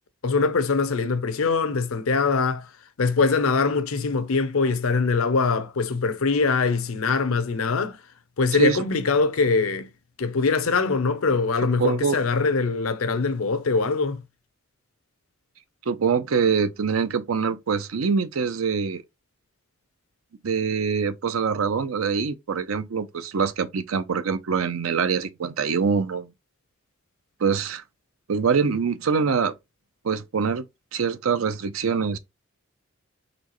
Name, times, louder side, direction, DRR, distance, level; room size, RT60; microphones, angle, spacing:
voice 1, 0.2-2.7 3.0-8.0 8.4-9.9 10.2-14.2, left 4 dB, 90° left, 0.7 m, -23 dB
voice 2, 11.8-12.2 15.9-19.0 20.4-26.3 27.4-27.8 28.3-29.5 30.0-30.6 30.9-32.2, right 5 dB, 85° right, 0.6 m, -24 dB
4.2 x 3.1 x 3.0 m
head